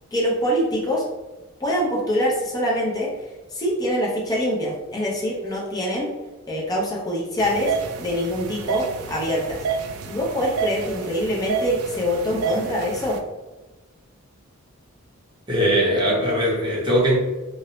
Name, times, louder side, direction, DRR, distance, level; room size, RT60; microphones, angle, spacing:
voice 1, 0.1-1.1 1.6-3.1 3.5-6.1 6.5-7.7 8.0-9.6 10.1-13.2, equal, 20° left, -4 dB, 0.5 m, -24 dB
sound 1, 7.4-13.2, right 5 dB, 85° right, 0.3 m, -29 dB
voice 2, 15.5-17.2, equal, 20° right, -4 dB, 0.6 m, -20 dB
2.6 x 2.0 x 2.9 m, 1.1 s
head